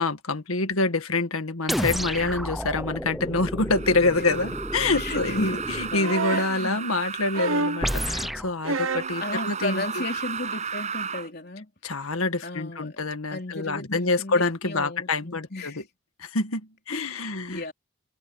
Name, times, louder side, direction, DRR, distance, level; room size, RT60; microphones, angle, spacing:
voice 1, 0.0-10.0 11.8-15.7 16.2-17.6, left 3 dB, 80° left, 1.8 m, -26 dB
sound 1, 1.7-6.0 7.8-8.5, equal, ahead, 0.8 m, -31 dB
sound 2, 3.7-8.3 8.9-11.3, right 6 dB, 35° right, 7.2 m, -34 dB
voice 2, 5.0-5.6 5.9-6.8 9.2-11.7 12.4-15.9 16.9-17.7, left 2 dB, 45° left, 3.8 m, -35 dB
sound 3, 6.0-6.5 7.3-7.9 8.6-9.2 10.4-10.5, right 3 dB, 70° right, 1.1 m, -27 dB
head